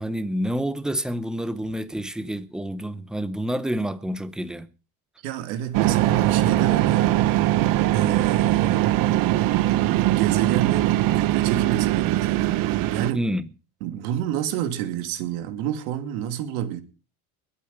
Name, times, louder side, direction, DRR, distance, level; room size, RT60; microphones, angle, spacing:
voice 1, 0.0-4.7 13.1-13.5, equal, ahead, 0.7 m, -28 dB
voice 2, 5.2-7.5 7.9-9.3 10.1-12.6 12.9-13.2 13.8-16.8, right 11 dB, 80° right, 2.8 m, -30 dB
sound 1, 5.7-13.1, right 14 dB, 50° right, 1.1 m, -21 dB
21.5 x 8.6 x 5.3 m
cardioid pair, 145°, 42 cm